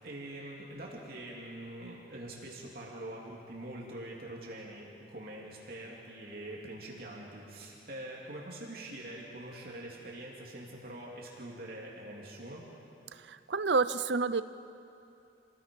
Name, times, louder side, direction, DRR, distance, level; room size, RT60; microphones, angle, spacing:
voice 1, 0.0-12.7, right 1 dB, 50° right, -3 dB, 2.8 m, -44 dB
voice 2, 13.3-14.4, right 4 dB, 65° right, 13 dB, 0.6 m, -28 dB
28.0 x 19.0 x 5.4 m, 2.6 s
head